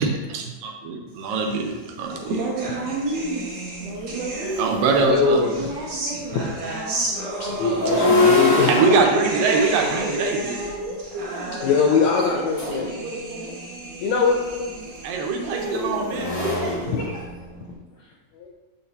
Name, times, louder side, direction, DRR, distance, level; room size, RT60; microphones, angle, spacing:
voice 1, 0.0-2.3 4.6-5.5 8.7-10.6 15.0-16.3, right 4 dB, 85° right, 2 dB, 2.5 m, -23 dB
sound 1, 1.5-5.0 5.4-16.9, right 2 dB, 55° right, 2.4 m, -33 dB
voice 2, 2.2-3.5 3.8-4.8 5.4-7.3 8.7-11.7 12.1-13.5 15.4-17.2, right 2 dB, 70° right, -5 dB, 1.7 m, -31 dB
sound 2, 3.3-3.4 3.8-5.7 7.6-10.8 12.1-12.9 14.3-17.7, left 3 dB, 50° left, 0.7 m, -25 dB
voice 3, 4.8-5.5 6.7-6.8 7.4-9.0 11.6-12.9 14.0-14.7 16.2-16.4 16.9-17.0, left 5 dB, 75° left, -1 dB, 1.7 m, -22 dB
7.0 x 5.8 x 2.8 m, 1.2 s
omnidirectional pair, 3.8 m